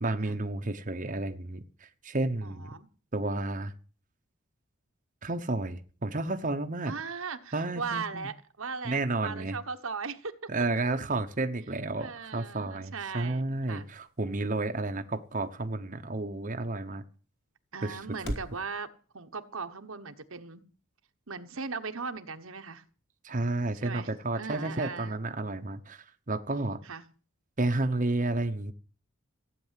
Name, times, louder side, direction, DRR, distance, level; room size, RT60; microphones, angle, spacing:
voice 1, 0.0-2.7 3.1-3.7 5.2-6.9 7.5-8.3 8.8-9.6 10.5-17.0 17.8-18.0 23.2-26.8 27.6-28.7, right 2 dB, 35° right, 6 dB, 1.0 m, -31 dB
voice 2, 2.4-2.9 6.9-10.5 12.0-13.4 13.7-13.9 17.7-18.9 19.1-20.6 21.3-22.8 23.7-25.2 26.8-27.0, right 5 dB, 70° right, 8 dB, 1.2 m, -38 dB
sound 1, 12.3-18.6, equal, 50° left, 2.5 m, -46 dB
16.0 x 9.1 x 7.5 m, 0.40 s
head